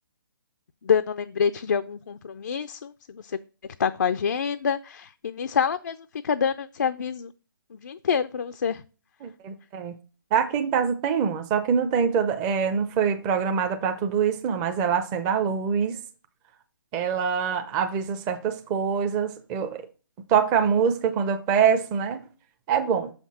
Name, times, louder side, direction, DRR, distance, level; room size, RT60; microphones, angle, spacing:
voice 1, 0.8-3.4 3.8-6.0 6.2-7.3 7.8-8.8, left 7 dB, 55° left, 0.4 m, -26 dB
voice 2, 9.2-9.9 10.3-16.0 16.9-19.8 20.3-22.3 22.7-23.1, right 7 dB, 20° right, 0.6 m, -24 dB
7.0 x 5.8 x 4.1 m
figure-of-eight pair, 140°, 11 cm